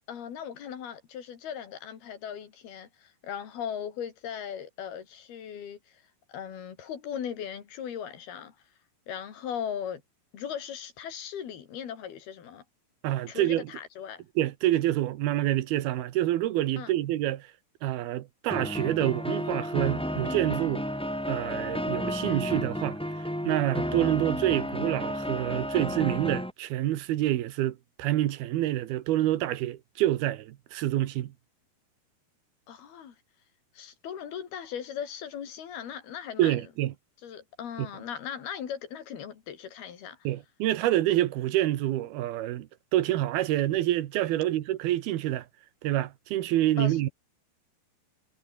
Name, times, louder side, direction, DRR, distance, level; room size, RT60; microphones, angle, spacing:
voice 1, 0.1-6.0 6.3-8.5 9.1-10.0 10.3-12.6 13.3-14.2 16.8-16.9 32.7-33.2 33.7-36.6 37.2-40.2 46.8-47.0, left 8 dB, 75° left, 4.8 m, -38 dB
voice 2, 13.0-13.7 14.4-17.5 17.8-20.8 21.3-23.0 23.4-31.3 36.4-36.9 37.8-37.9 40.2-45.5 45.8-47.1, right 14 dB, 80° right, 3.1 m, -27 dB
sound 1, 18.5-26.5, equal, ahead, 2.4 m, -32 dB
omnidirectional pair, 4.4 m